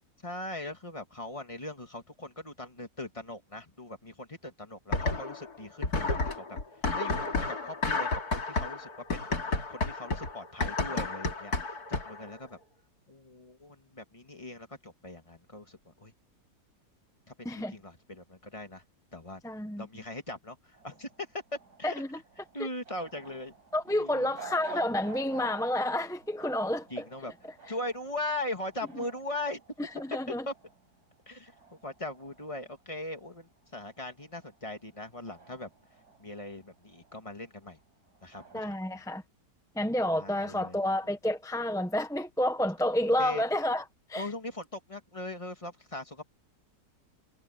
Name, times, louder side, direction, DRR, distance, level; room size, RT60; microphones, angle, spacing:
voice 1, 0.2-6.6 7.0-8.1 8.5-12.6 13.1-16.1 17.4-18.8 19.1-19.4 19.8-20.6 20.8-21.4 21.8-22.0 22.5-23.5 23.9-24.3 26.9-27.3 27.7-29.6 30.3-30.5 31.3-31.5 31.8-35.7 36.2-37.8 38.2-39.0 40.1-40.8 43.2-43.4 44.2-46.2, left 2 dB, 20° left, 2.0 m, -40 dB
sound 1, 4.9-5.5 5.8-12.3, left 3 dB, 70° left, 3.1 m, -31 dB
voice 2, 19.4-19.9 21.8-22.2 23.7-27.1 29.8-30.5 38.5-39.2 39.8-44.3, left 1 dB, 5° left, 0.6 m, -30 dB
sound 2, 20.7-33.4 33.7-38.9, right 5 dB, 75° right, 5.7 m, -52 dB
omnidirectional pair, 1.7 m